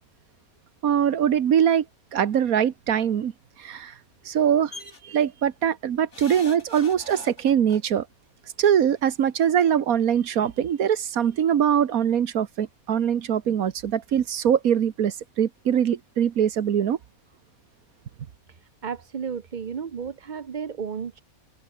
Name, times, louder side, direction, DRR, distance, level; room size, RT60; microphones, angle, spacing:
voice 1, 0.8-1.8 2.1-3.3 3.6-3.9 4.3-4.7 5.1-8.0 8.6-17.0, right 9 dB, 75° right, 1.5 m, -22 dB
sound 1, 4.7-5.0 6.1-7.8 9.0-9.1 9.4-9.5, left 3 dB, 50° left, 3.5 m, -42 dB
voice 2, 18.8-21.2, right 6 dB, 45° right, 0.6 m, -33 dB
omnidirectional pair, 1.5 m